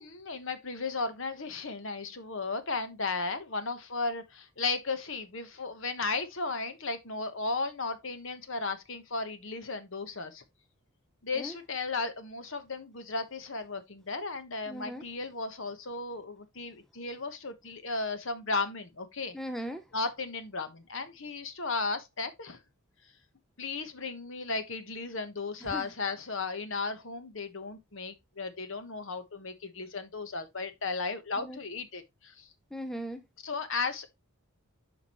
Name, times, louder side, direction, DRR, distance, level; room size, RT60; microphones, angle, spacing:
voice 1, 0.0-10.4 11.2-19.4 19.9-22.6 23.6-32.5 33.4-34.1, left 3 dB, 55° left, 1.1 m, -35 dB
voice 2, 14.7-15.0 19.3-19.8 25.6-25.9 31.4-31.6 32.7-33.2, equal, ahead, 0.5 m, -38 dB
8.4 x 5.2 x 3.0 m
head